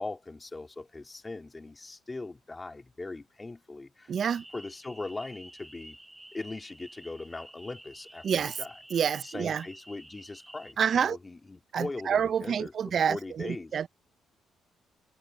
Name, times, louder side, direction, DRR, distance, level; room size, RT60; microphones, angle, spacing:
voice 1, 0.0-4.1 4.5-6.0 6.3-8.7 9.2-13.8, left 3 dB, 20° left, 2.9 m, -40 dB
voice 2, 4.1-4.4 8.2-8.6 8.9-9.6 10.8-11.2 11.7-13.9, right 7 dB, 55° right, 0.4 m, -28 dB
sound 1, 4.2-10.7, right 1 dB, 5° right, 2.8 m, -51 dB
cardioid pair, 90°, 0 cm